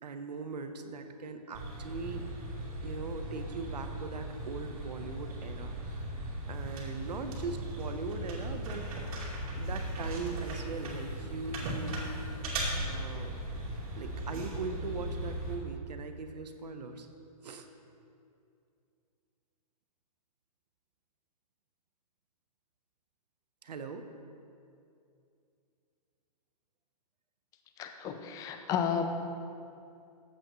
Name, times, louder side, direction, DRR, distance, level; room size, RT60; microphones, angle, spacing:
voice 1, 0.0-2.3 2.8-8.9 9.6-13.4 14.0-17.1 17.4-17.7 23.6-24.1, right 4 dB, 90° right, 7 dB, 1.0 m, -40 dB
sound 1, 1.5-15.6, right 1 dB, 65° right, 2.6 m, -38 dB
voice 2, 27.8-29.1, left 8 dB, 15° left, 7 dB, 0.5 m, -32 dB
14.5 x 7.9 x 3.1 m, 2.5 s
hypercardioid pair, 150°, 20 cm